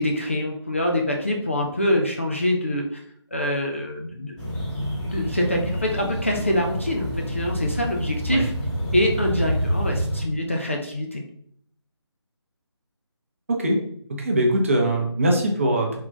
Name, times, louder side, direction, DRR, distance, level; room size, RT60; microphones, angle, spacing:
voice 1, 0.0-3.0 3.3-4.4 5.1-8.5 8.9-11.2, left 1 dB, 30° left, 1 dB, 0.3 m, -25 dB
sound 1, 4.4-10.2, equal, 5° left, 1.0 m, -28 dB
voice 2, 14.2-16.0, right 1 dB, 30° right, 1 dB, 0.6 m, -21 dB
3.6 x 2.3 x 3.8 m, 0.66 s
figure-of-eight pair, 155°, 15 cm